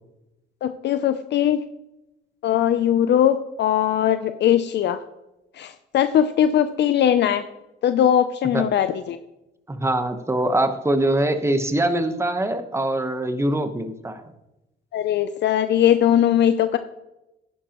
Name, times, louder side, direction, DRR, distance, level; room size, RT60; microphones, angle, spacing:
voice 1, 0.6-1.6 2.4-5.0 5.6-7.4 7.8-9.2 14.9-16.8, left 10 dB, 60° left, 11 dB, 0.5 m, -20 dB
voice 2, 9.7-14.3, right 1 dB, 15° right, 8 dB, 1.1 m, -23 dB
11.0 x 10.0 x 3.0 m, 0.94 s
cardioid pair, 90°, 20 cm